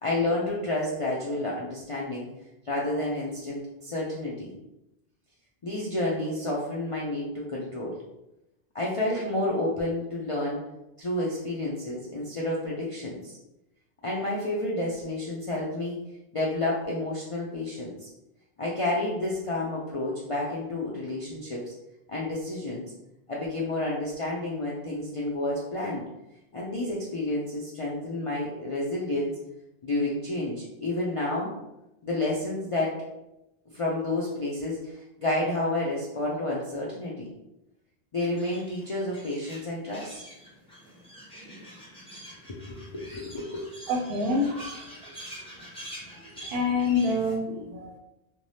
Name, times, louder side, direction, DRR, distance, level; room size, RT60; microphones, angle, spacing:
voice 1, 0.0-2.3 2.6-4.5 5.6-8.0 8.7-10.6 11.0-13.3 14.0-16.0 16.3-18.1 18.6-21.7 22.1-22.8 23.3-26.0 26.5-29.4 29.8-31.5 32.0-33.0 33.7-37.3 38.1-40.2 42.5-43.7, left 2 dB, 55° left, -5 dB, 0.3 m, -30 dB
sound 1, 38.2-47.4, equal, 5° left, 0.8 m, -46 dB
voice 2, 43.9-44.9 46.5-48.0, left 2 dB, 70° right, 2 dB, 0.8 m, -27 dB
3.2 x 2.2 x 2.7 m, 0.90 s
omnidirectional pair, 1.1 m